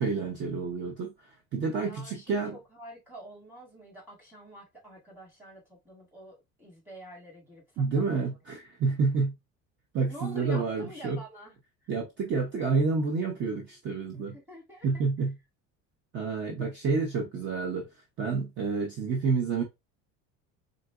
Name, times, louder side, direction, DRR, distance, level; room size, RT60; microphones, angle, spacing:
voice 1, 0.0-2.6 7.8-9.3 9.9-11.2 11.9-14.4 14.8-15.3 16.1-17.8 18.2-19.6, right 4 dB, 35° right, 0.7 m, -29 dB
voice 2, 1.8-8.2 10.1-11.5 14.1-15.0, right 1 dB, 5° right, 2.2 m, -47 dB
3.9 x 3.8 x 2.3 m
cardioid pair, 170°, 31 cm